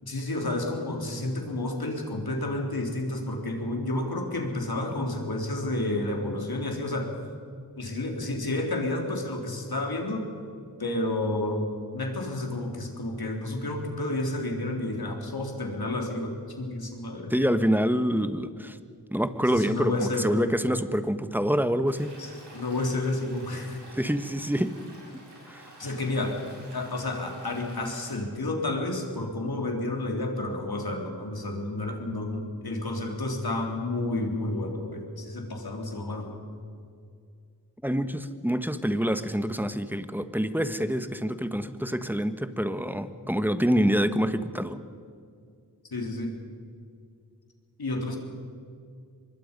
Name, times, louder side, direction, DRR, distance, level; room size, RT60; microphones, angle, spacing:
voice 1, 0.0-7.1 7.8-10.3 10.8-11.7 11.9-17.3 19.3-20.5 22.2-23.8 25.8-26.4 26.7-36.4 45.9-46.3 47.8-48.2, left 2 dB, 65° left, 2 dB, 3.7 m, -30 dB
voice 2, 17.3-18.8 19.1-22.1 23.9-24.7 25.5-25.7 37.8-44.8, equal, 5° right, 11 dB, 1.3 m, -26 dB
Stream, 21.9-28.2, right 1 dB, 80° right, 7.3 m, -50 dB
25.0 x 21.0 x 5.4 m, 2.3 s
cardioid pair, 50°, 40 cm